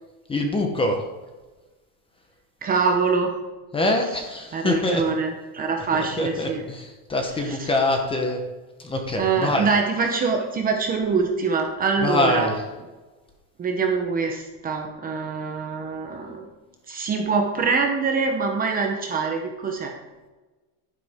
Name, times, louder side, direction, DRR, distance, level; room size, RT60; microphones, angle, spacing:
voice 1, 0.3-1.0 3.7-5.0 5.9-8.4 8.8-9.7 12.0-12.6, left 1 dB, 10° left, 3 dB, 1.0 m, -24 dB
voice 2, 2.6-3.3 4.5-6.6 7.4-7.7 9.2-12.5 13.6-16.5 16.9-19.9, right 4 dB, 20° right, 2 dB, 0.9 m, -24 dB
11.0 x 10.0 x 3.6 m, 1.2 s
cardioid pair, 170°, 44 cm